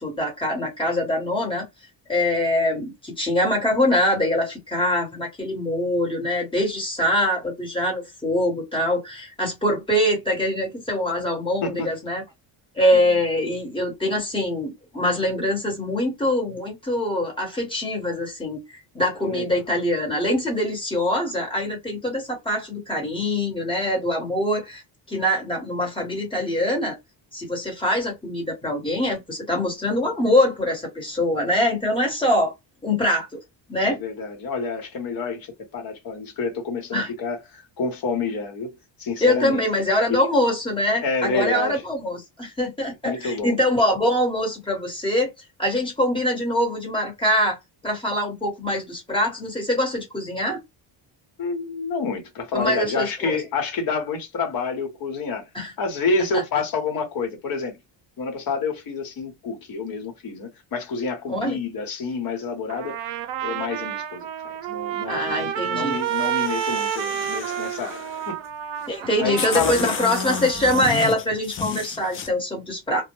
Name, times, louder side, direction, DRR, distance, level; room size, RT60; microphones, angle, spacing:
voice 1, 0.0-1.6 2.1-12.2 12.8-24.8 25.1-27.0 27.3-32.5 32.8-33.4 33.7-34.0 36.9-37.1 39.2-45.3 45.6-47.6 47.8-50.6 52.5-53.4 55.5-55.7 56.3-56.4 61.3-61.6 65.1-66.0 68.9-73.0, left 1 dB, 10° left, 1.1 m, -23 dB
voice 2, 19.2-19.6 33.9-39.6 40.1-40.2 41.0-41.8 43.0-43.6 51.4-55.5 55.8-57.8 58.2-63.0 63.4-68.0 68.3-68.4 69.2-69.9, left 4 dB, 50° left, 1.0 m, -28 dB
Trumpet, 62.7-70.7, right 10 dB, 75° right, 0.5 m, -30 dB
sound 1, 65.9-68.3 68.9-69.0 69.4-72.3, left 6 dB, 30° left, 0.4 m, -32 dB
2.2 x 2.1 x 3.0 m
cardioid pair, 145°, 45 cm